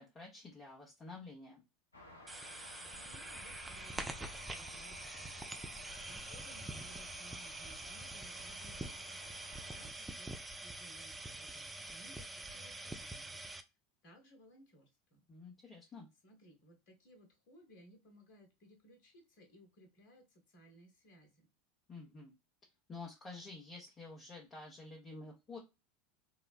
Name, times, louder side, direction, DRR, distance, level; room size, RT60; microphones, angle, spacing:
voice 1, 0.0-1.6 15.3-16.1 21.9-22.3 22.9-25.6, left 3 dB, 25° left, -2 dB, 0.9 m, -50 dB
sound 1, 1.9-9.9, left 2 dB, 80° left, 0.7 m, -57 dB
sound 2, 2.3-13.6, right 2 dB, 10° right, 0.4 m, -45 dB
voice 2, 2.9-5.4 5.7-9.5 9.7-13.4 14.0-15.2 15.8-15.9 16.2-21.5, right 1 dB, 50° left, 3 dB, 1.1 m, -61 dB
3.9 x 2.1 x 2.3 m, 0.25 s
figure-of-eight pair, 75°, 0 cm